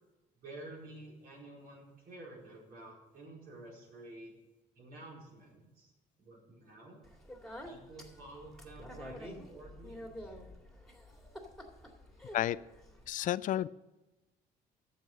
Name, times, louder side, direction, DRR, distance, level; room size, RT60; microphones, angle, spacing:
voice 1, 0.4-4.3 4.7-5.9 6.2-7.0 7.6-10.3, right 2 dB, 60° right, -3 dB, 4.6 m, -51 dB
Speech, 7.0-13.1, equal, ahead, 2.1 m, -49 dB
voice 2, 13.1-13.7, left 12 dB, 50° left, 17 dB, 0.4 m, -31 dB
9.3 x 7.4 x 7.9 m, 1.1 s
cardioid pair, 110°, 17 cm